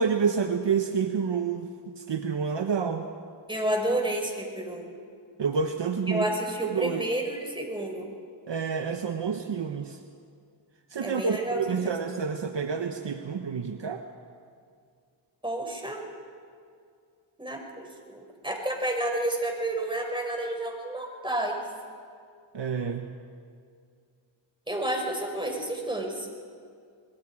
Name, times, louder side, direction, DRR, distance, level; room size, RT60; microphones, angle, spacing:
voice 1, 0.0-3.1 5.4-6.3 6.6-7.0 8.5-10.0 10.9-14.0 22.5-23.1, right 6 dB, 60° right, 6 dB, 1.3 m, -28 dB
voice 2, 3.5-4.9 6.1-8.1 11.0-11.9 15.4-16.0 17.4-21.6 24.7-26.3, right 1 dB, 10° right, 1 dB, 6.0 m, -30 dB
26.5 x 21.0 x 5.0 m, 2.3 s
cardioid pair, 50°, 49 cm